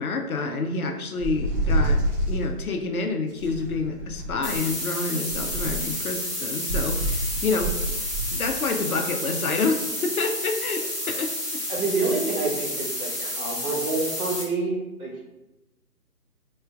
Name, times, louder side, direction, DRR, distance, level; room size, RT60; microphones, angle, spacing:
voice 1, 0.0-8.0 8.3-11.6, left 3 dB, 65° left, 5 dB, 0.5 m, -28 dB
sound 1, 1.2-2.4 3.4-4.6 5.3-6.0 6.7-8.3, right 1 dB, 35° right, 1.1 m, -27 dB
sound 2, 4.4-14.4, left 1 dB, 5° left, 0.9 m, -31 dB
voice 2, 11.7-15.1, right 3 dB, 65° right, -4 dB, 1.4 m, -27 dB
3.7 x 3.1 x 2.3 m, 0.99 s
figure-of-eight pair, 155°, 48 cm